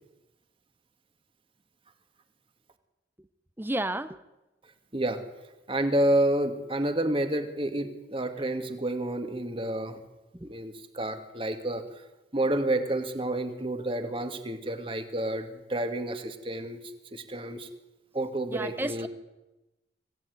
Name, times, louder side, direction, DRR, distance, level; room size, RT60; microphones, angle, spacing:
voice 1, 3.6-4.2 10.3-10.5 18.5-19.1, right 1 dB, 10° right, 13 dB, 0.7 m, -32 dB
voice 2, 5.7-10.0 10.4-11.8 12.3-16.8 17.1-17.7 18.1-19.1, right 1 dB, 30° right, 7 dB, 2.3 m, -29 dB
25.5 x 17.0 x 9.6 m, 1.0 s
head